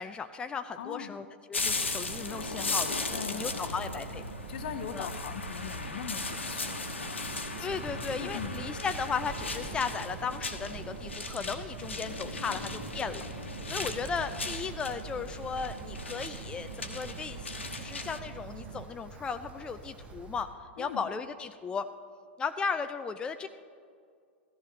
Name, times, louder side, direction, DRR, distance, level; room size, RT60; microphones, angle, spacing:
voice 1, 0.0-2.9 3.3-4.2 4.9-5.1 7.6-13.3 13.7-21.9 22.4-23.5, left 5 dB, 15° left, 9 dB, 0.4 m, -36 dB
voice 2, 0.8-1.1 3.1-3.8 4.5-8.6 12.4-12.8 13.7-14.1 20.8-21.0, left 9 dB, 55° left, 12 dB, 0.8 m, -42 dB
sound 1, 1.5-18.2, left 3 dB, 80° left, 1.1 m, -37 dB
sound 2, 1.6-18.9, right 10 dB, 60° right, 0.3 m, -46 dB
Wind, 7.7-20.4, right 4 dB, 20° right, 1.4 m, -46 dB
16.0 x 14.0 x 3.4 m, 2.2 s
figure-of-eight pair, 100°, 6 cm